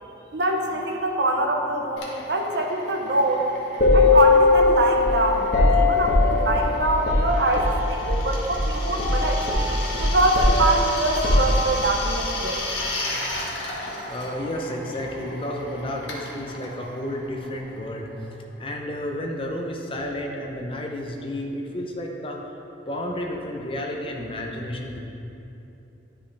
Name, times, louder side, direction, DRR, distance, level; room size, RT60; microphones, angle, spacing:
voice 1, 0.3-3.4 3.9-9.4 10.0-12.6, right 2 dB, 60° right, 2 dB, 0.7 m, -24 dB
Drill, 2.0-18.3, left 2 dB, 75° left, 1.2 m, -35 dB
sound 1, 3.8-8.2 8.5-8.7 9.0-12.0, left 2 dB, 50° left, 1.5 m, -20 dB
voice 2, 14.1-22.4 22.9-25.0, left 1 dB, 25° left, 0 dB, 0.7 m, -31 dB
10.5 x 5.6 x 3.4 m, 2.9 s
head